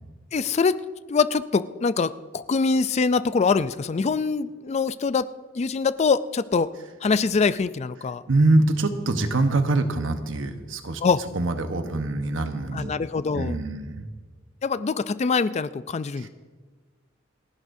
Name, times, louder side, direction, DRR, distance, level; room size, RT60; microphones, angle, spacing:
voice 1, 0.3-0.8 1.1-5.3 5.5-6.7 7.0-8.2 11.0-11.2 12.7-13.6 14.6-16.3, left 4 dB, 35° left, 15 dB, 0.4 m, -24 dB
voice 2, 8.3-11.0 11.3-12.9 13.3-14.1 16.2-16.3, right 2 dB, 85° right, 7 dB, 1.1 m, -24 dB
29.0 x 11.0 x 2.7 m, 1.4 s
head